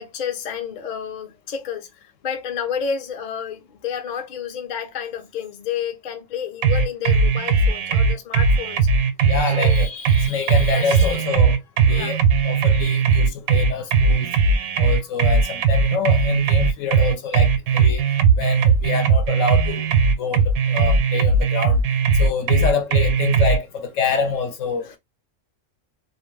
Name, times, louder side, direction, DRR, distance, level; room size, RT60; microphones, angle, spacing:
voice 1, 0.0-8.9 9.5-9.9 10.7-11.2 11.9-12.2 24.8-25.0, left 7 dB, 50° left, 0.6 m, -30 dB
sound 1, 6.6-23.6, right 5 dB, 90° right, 1.0 m, -18 dB
voice 2, 9.3-11.6 11.9-14.3 14.8-18.0 18.3-19.9 20.2-21.8 22.2-25.0, left 5 dB, 70° left, 0.9 m, -26 dB
2.5 x 2.2 x 3.0 m
omnidirectional pair, 1.4 m